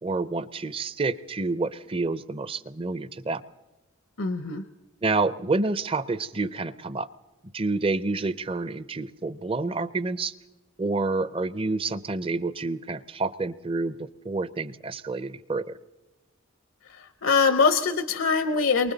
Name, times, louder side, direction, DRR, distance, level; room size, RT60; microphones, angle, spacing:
voice 1, 0.0-3.4 5.0-7.1 7.5-10.3 10.8-15.8, right 3 dB, 25° right, 15 dB, 0.6 m, -28 dB
voice 2, 4.2-4.6 16.9-18.9, left 5 dB, 70° left, 10 dB, 0.7 m, -23 dB
29.5 x 23.5 x 4.0 m, 1.1 s
head